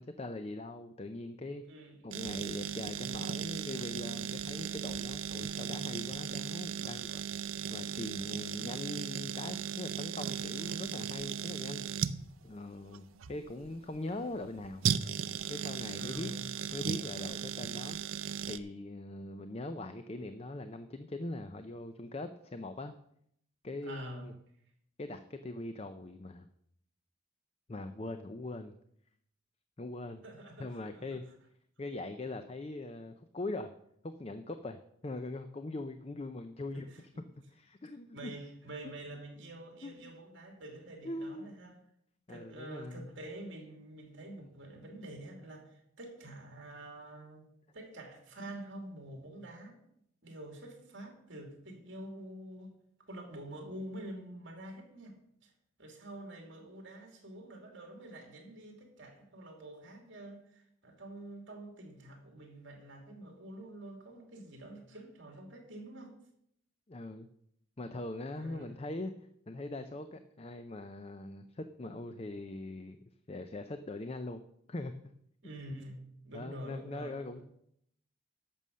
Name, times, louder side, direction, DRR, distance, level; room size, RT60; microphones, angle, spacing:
voice 1, 0.0-1.6 2.0-11.9 12.4-14.8 15.5-16.3 16.7-18.0 18.5-22.9 23.6-24.3 25.0-26.5 27.7-28.7 29.8-30.2 30.6-31.2 31.8-33.7 34.0-37.1 37.5-38.3 39.8-40.1 41.0-41.5 42.3-43.2 66.9-67.3 67.8-69.1 69.5-73.0 73.3-74.4 74.7-75.0 76.3-77.4, left 2 dB, 30° left, 0.5 m, -41 dB
voice 2, 1.7-2.1 16.0-16.4 23.9-24.4 30.2-31.2 36.7-37.0 38.1-41.8 42.3-47.4 47.7-49.8 50.2-52.8 53.1-55.5 55.8-66.1 68.3-68.8 75.4-77.4, right 1 dB, 60° right, 2.8 m, -47 dB
sound 1, 2.1-18.6, right 8 dB, 80° right, 0.5 m, -37 dB
11.0 x 7.0 x 6.3 m
head